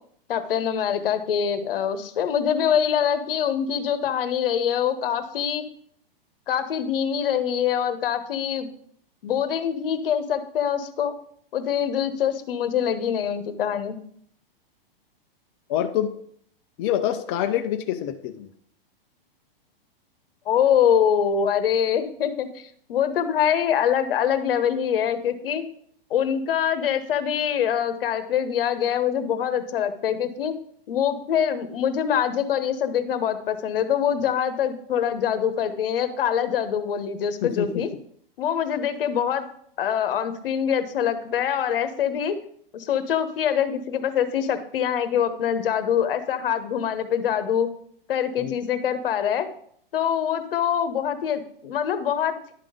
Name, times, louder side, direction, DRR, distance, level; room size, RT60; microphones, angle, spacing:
voice 1, 0.3-5.6 6.5-8.7 9.2-11.1 11.5-14.0 20.5-25.6 26.1-30.5 30.9-37.9 38.4-39.5 39.8-42.3 42.7-47.7 48.1-49.5 49.9-52.5, left 8 dB, 70° left, 10 dB, 1.1 m, -24 dB
voice 2, 15.7-16.1 16.8-18.5 37.4-37.7 48.4-48.5, left 11 dB, 25° left, 5 dB, 0.4 m, -26 dB
11.0 x 3.8 x 5.0 m, 0.63 s
hypercardioid pair, 150°, 29 cm